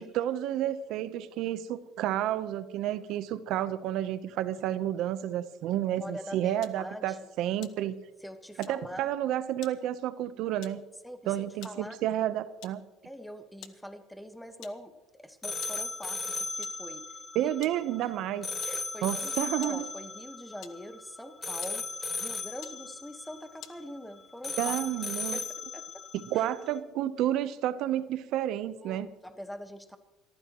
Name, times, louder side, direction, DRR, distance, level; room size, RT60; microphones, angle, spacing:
voice 1, 0.0-7.9 8.6-10.8 11.3-12.8 17.3-18.5 19.0-19.8 24.6-25.4 26.1-29.1, right 12 dB, 65° right, 13 dB, 0.9 m, -30 dB
voice 2, 6.0-7.2 8.2-9.1 11.0-12.0 13.0-17.5 18.0-18.1 18.6-21.9 22.2-24.7 25.3-26.0 26.3-26.5 28.8-30.0, equal, 5° left, 8 dB, 1.5 m, -44 dB
sound 1, 6.6-6.9 7.5-8.3 8.6-8.9 9.6-9.9 10.6-10.9 11.4-11.9 12.6-12.9 13.6-13.9 14.2-14.3 14.6-14.9 15.6-15.9 16.6-16.9 17.6-17.9 18.6-18.9 19.6-19.9 20.6-21.1 21.6-21.9 22.6-22.9 23.6-23.9, left 12 dB, 65° left, 1.0 m, -50 dB
sound 2, 15.4-26.8, left 3 dB, 20° left, 0.9 m, -37 dB
27.0 x 14.5 x 3.1 m, 1.1 s
cardioid pair, 120°, 0 cm